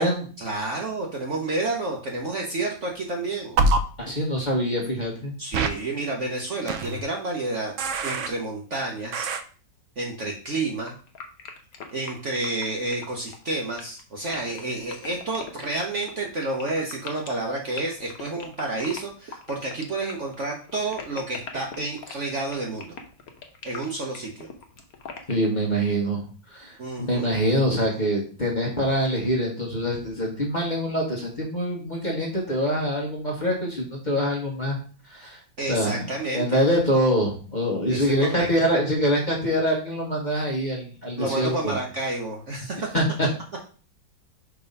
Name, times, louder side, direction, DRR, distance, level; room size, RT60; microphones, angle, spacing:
voice 1, 0.4-3.6 5.4-7.7 8.0-9.3 10.0-10.9 11.9-22.9 23.6-24.5 26.8-27.3 35.6-36.6 37.9-38.5 41.2-42.9, right 2 dB, 50° right, 0 dB, 1.0 m, -30 dB
sound 1, 3.6-3.8 5.5-5.7 6.7-7.0 7.8-8.3 9.1-9.4, right 3 dB, 80° right, 0.6 m, -23 dB
voice 2, 4.0-5.3 25.3-26.2 26.5-34.8 35.1-35.4 35.7-41.7 42.9-43.3, equal, 30° left, -2 dB, 1.2 m, -25 dB
sound 2, 10.9-25.5, left 6 dB, 55° left, 1.3 m, -40 dB
5.4 x 3.5 x 5.3 m, 0.40 s
omnidirectional pair, 2.0 m